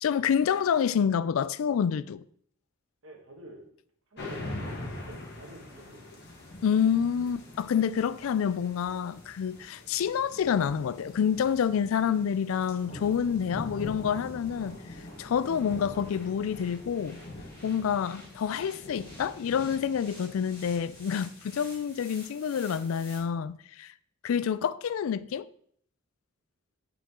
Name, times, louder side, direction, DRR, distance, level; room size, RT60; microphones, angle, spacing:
voice 1, 0.0-2.2 6.6-14.8 15.2-17.2 17.6-23.9 24.2-25.5, left 7 dB, 80° left, 0.3 m, -28 dB
voice 2, 3.0-3.7 4.1-6.2 9.8-9.9, right 1 dB, 85° right, 1.7 m, -50 dB
sound 1, 4.2-22.0, left 2 dB, 55° left, 1.7 m, -43 dB
sound 2, 9.5-23.2, left 1 dB, 10° left, 3.4 m, -54 dB
8.3 x 5.1 x 3.7 m
head